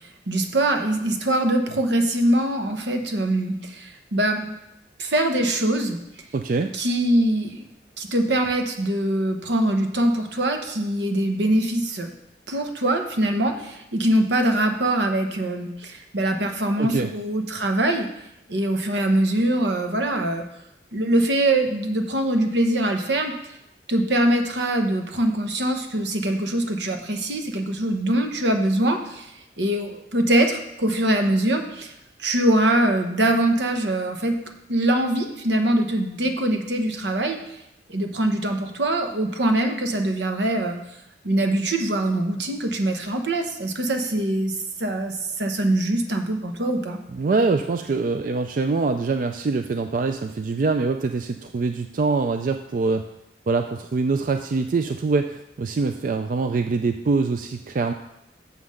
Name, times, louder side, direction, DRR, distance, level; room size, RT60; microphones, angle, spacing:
voice 1, 0.3-4.6 5.0-6.0 6.7-7.6 8.0-12.1 12.5-18.1 18.5-20.5 20.9-23.3 23.9-29.3 29.6-31.9 32.2-34.4 34.7-37.4 37.9-40.8 41.2-44.5 44.8-47.0, right 1 dB, 80° right, 5 dB, 1.0 m, -23 dB
voice 2, 6.3-6.7 16.8-17.1 47.1-53.1 53.5-57.9, right 4 dB, 50° right, 7 dB, 0.3 m, -24 dB
7.0 x 5.7 x 6.4 m, 0.85 s
head